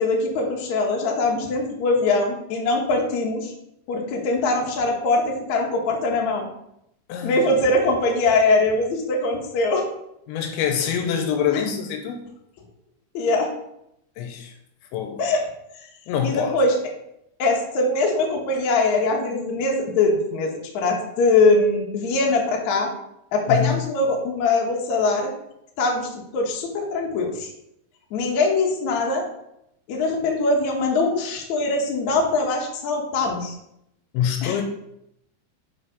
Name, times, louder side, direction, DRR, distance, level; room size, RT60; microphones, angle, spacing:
voice 1, 0.0-3.5 3.9-6.5 7.2-9.8 11.5-11.6 13.1-13.5 15.2-15.4 16.2-16.8 17.4-22.9 23.3-25.3 25.8-27.5 28.1-29.2 29.9-33.5 34.4-34.6, left 3 dB, 65° left, 0 dB, 1.8 m, -22 dB
voice 2, 10.3-12.2 14.2-14.5 14.9-15.2 16.1-16.6 23.5-23.9 34.1-34.6, left 8 dB, 80° left, 5 dB, 3.0 m, -25 dB
6.6 x 5.6 x 5.0 m, 0.79 s
omnidirectional pair, 5.4 m